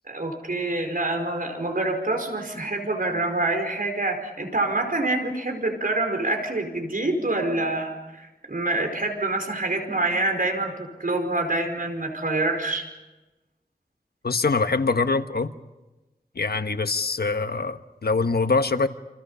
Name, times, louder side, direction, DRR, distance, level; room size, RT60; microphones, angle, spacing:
voice 1, 0.0-12.9, right 2 dB, 60° right, 4 dB, 4.9 m, -26 dB
voice 2, 14.2-15.5 16.3-18.9, left 3 dB, 75° left, 8 dB, 1.3 m, -24 dB
29.0 x 27.0 x 5.7 m, 1.1 s
wide cardioid pair, 65°, 16 cm